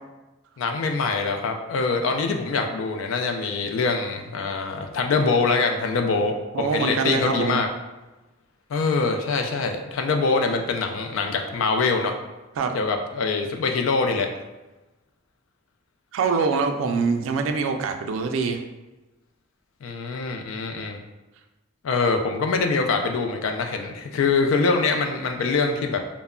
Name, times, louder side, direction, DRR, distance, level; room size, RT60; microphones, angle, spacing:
voice 1, 0.6-7.7 8.7-12.1 12.7-14.3 16.9-17.1 19.8-21.0 21.8-26.0, left 4 dB, 85° left, 4 dB, 0.4 m, -24 dB
voice 2, 6.5-7.6 12.6-12.8 16.1-18.6, right 4 dB, 80° right, 6 dB, 0.3 m, -24 dB
2.2 x 2.0 x 3.5 m, 1.1 s
head